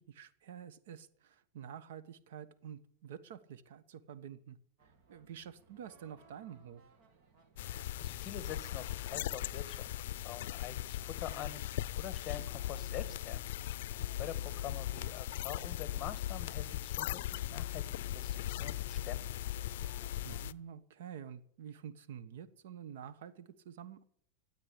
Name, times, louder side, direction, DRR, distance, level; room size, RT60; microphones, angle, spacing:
voice 1, 0.0-4.6 5.1-6.8 20.2-24.0, right 8 dB, 75° right, 15 dB, 1.2 m, -48 dB
sound 1, 4.8-20.5, right 4 dB, 45° right, 2.6 m, -65 dB
sound 2, 7.6-20.5, left 13 dB, 70° left, 0.5 m, -39 dB
voice 2, 7.6-19.3, left 10 dB, 25° left, 13 dB, 1.5 m, -46 dB
13.5 x 8.7 x 9.9 m, 0.66 s
supercardioid pair, 155°, 0 cm